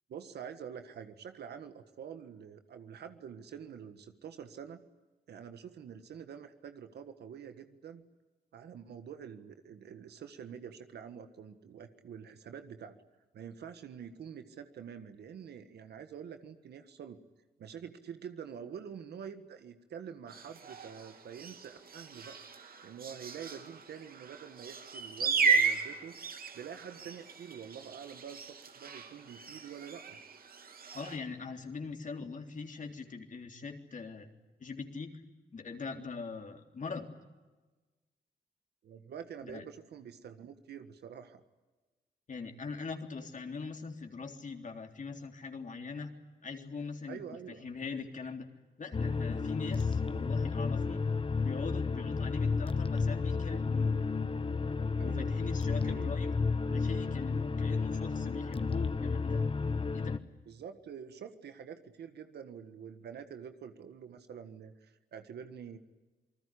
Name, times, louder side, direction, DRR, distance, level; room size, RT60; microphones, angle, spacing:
voice 1, 0.1-4.8 5.3-8.0 8.5-13.0 13.3-17.2 17.6-22.4 22.8-26.2 26.5-30.2 38.8-41.4 47.1-47.7 55.0-56.1 60.5-65.8, right 7 dB, 85° right, 8 dB, 1.6 m, -47 dB
sound 1, 20.3-31.2, right 5 dB, 65° right, 3.0 m, -35 dB
voice 2, 30.9-34.3 34.6-35.1 35.5-37.1 39.4-39.6 42.3-46.1 46.4-48.5 48.8-51.0 51.4-53.9 55.0-56.3 56.7-59.5 59.9-60.2, left 4 dB, 50° left, 4 dB, 3.5 m, -42 dB
sound 2, 48.9-60.2, left 4 dB, 35° left, 1.3 m, -32 dB
28.0 x 20.0 x 10.0 m, 1.2 s
cardioid pair, 80°, 17 cm